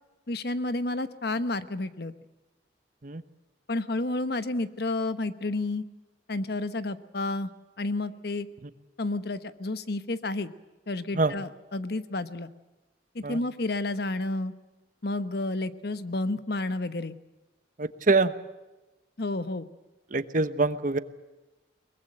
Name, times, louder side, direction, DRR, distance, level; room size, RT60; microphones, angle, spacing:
voice 1, 0.3-2.1 3.7-5.8 6.3-7.5 7.8-8.5 9.0-10.5 10.9-12.5 13.1-14.5 15.0-17.1 19.2-19.7, left 2 dB, 60° left, 12 dB, 1.1 m, -30 dB
voice 2, 17.8-18.3 20.1-21.0, right 3 dB, 45° right, 13 dB, 1.0 m, -24 dB
22.5 x 21.0 x 7.8 m, 1.1 s
head